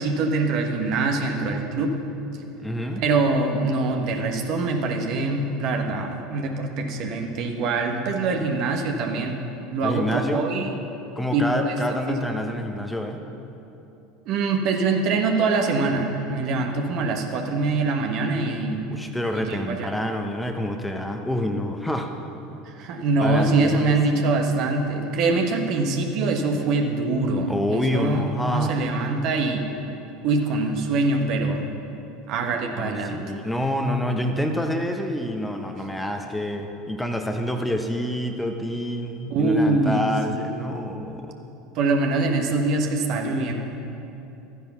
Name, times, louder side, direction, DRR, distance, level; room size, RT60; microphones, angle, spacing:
voice 1, 0.0-2.0 3.0-9.4 9.7-10.8 11.3-12.2 14.3-18.8 19.3-19.9 22.6-29.6 30.2-31.7 32.3-33.2 39.3-40.1 40.4-40.9 41.7-43.5, right 3 dB, 55° right, 3 dB, 1.4 m, -24 dB
voice 2, 2.6-3.0 9.8-10.6 11.2-13.2 18.9-22.1 23.2-24.2 26.6-26.7 27.5-28.8 32.7-41.4, left 1 dB, 5° left, 4 dB, 1.0 m, -27 dB
12.5 x 10.0 x 5.7 m, 2.9 s
hypercardioid pair, 75°, 0 cm